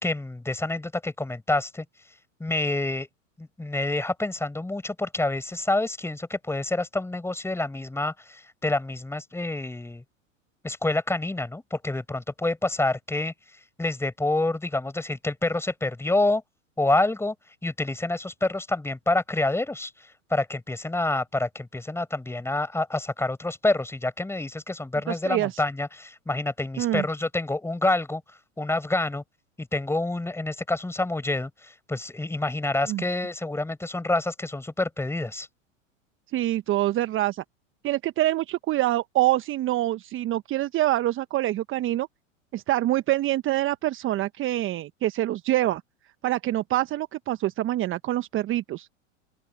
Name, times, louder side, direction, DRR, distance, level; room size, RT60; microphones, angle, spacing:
voice 1, 0.0-1.9 2.4-3.1 3.4-10.0 10.6-13.3 13.8-16.4 16.8-17.3 17.6-19.9 20.3-28.2 28.6-29.2 29.6-35.5, left 2 dB, 5° left, 5.4 m, -27 dB
voice 2, 25.1-25.6 26.8-27.0 32.9-33.0 36.3-37.4 37.8-42.1 42.5-45.8 46.2-48.9, right 15 dB, 30° right, 1.2 m, -25 dB
open air
hypercardioid pair, 100°, 39 cm